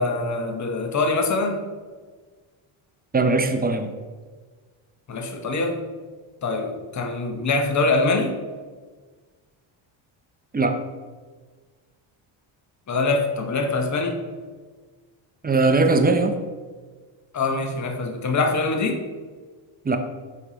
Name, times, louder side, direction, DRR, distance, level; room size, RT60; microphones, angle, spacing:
voice 1, 0.0-1.6 5.1-5.9 6.4-8.4 12.9-14.2 17.3-19.0, left 3 dB, 35° left, 4 dB, 1.1 m, -24 dB
voice 2, 3.1-3.9 10.5-10.8 15.4-16.3 19.8-20.0, right 3 dB, 20° right, 6 dB, 0.8 m, -20 dB
6.9 x 5.0 x 4.0 m, 1.4 s
cardioid pair, 85°, 50 cm